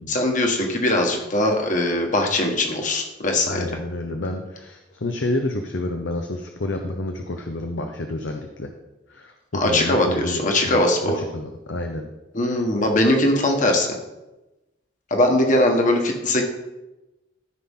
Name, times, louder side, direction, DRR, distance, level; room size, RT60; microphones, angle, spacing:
voice 1, 0.1-3.6 9.5-11.2 12.3-13.9 15.1-16.4, left 1 dB, 45° left, 2 dB, 1.5 m, -20 dB
voice 2, 3.5-8.7 9.1-12.1 12.5-12.6, left 2 dB, 85° left, 5 dB, 0.8 m, -29 dB
14.0 x 5.9 x 3.7 m, 1.0 s
head